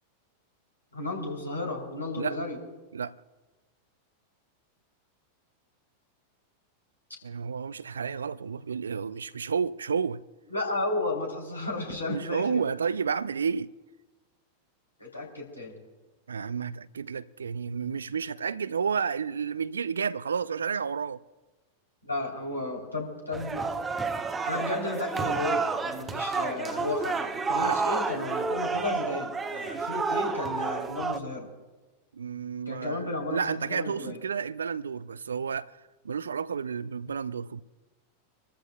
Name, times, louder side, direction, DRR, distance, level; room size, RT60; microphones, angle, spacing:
voice 1, 0.9-2.6 10.5-12.6 15.0-15.8 22.0-23.6 24.4-31.5 32.6-34.2, left 2 dB, 85° left, 3.4 m, -33 dB
voice 2, 7.2-10.2 12.1-13.7 16.3-21.2 27.5-27.8 32.1-37.6, right 6 dB, 70° right, 0.4 m, -31 dB
sound 1, 23.3-31.2, right 4 dB, 15° right, 0.9 m, -30 dB
26.5 x 14.0 x 2.3 m
figure-of-eight pair, 90°, 0 cm